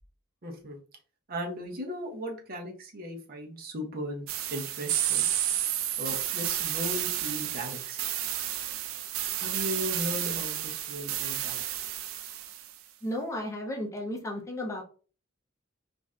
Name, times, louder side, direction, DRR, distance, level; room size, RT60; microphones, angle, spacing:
voice 1, 0.4-0.8 1.3-5.3 6.0-8.0 9.4-11.6, equal, 45° right, 1 dB, 0.8 m, -37 dB
sound 1, 4.3-12.7, right 11 dB, 85° right, 0.4 m, -31 dB
voice 2, 13.0-14.8, left 1 dB, 15° left, 0 dB, 0.6 m, -34 dB
2.5 x 2.5 x 3.2 m, 0.39 s
head